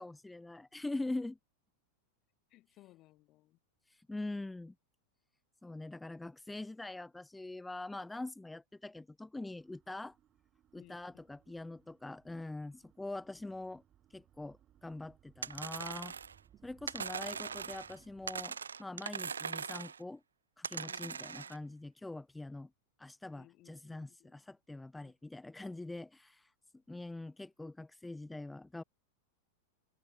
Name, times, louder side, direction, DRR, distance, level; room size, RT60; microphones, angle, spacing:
voice 1, 0.0-1.4 3.9-4.7 5.6-10.2 10.7-13.8 14.1-16.1 16.6-20.2 20.6-22.7 23.0-26.5 26.9-28.8, left 2 dB, 5° left, 0.9 m, -43 dB
voice 2, 2.5-3.6 10.7-11.0 11.5-11.6 11.8-11.9 20.8-21.5 23.3-24.4, left 17 dB, 35° left, 3.7 m, -62 dB
sound 1, 9.5-18.5, right 11 dB, 30° right, 3.4 m, -66 dB
sound 2, 15.4-16.4 16.9-18.0 18.3-20.0 20.6-21.6, right 6 dB, 70° right, 0.4 m, -41 dB
figure-of-eight pair, 90°, 0 cm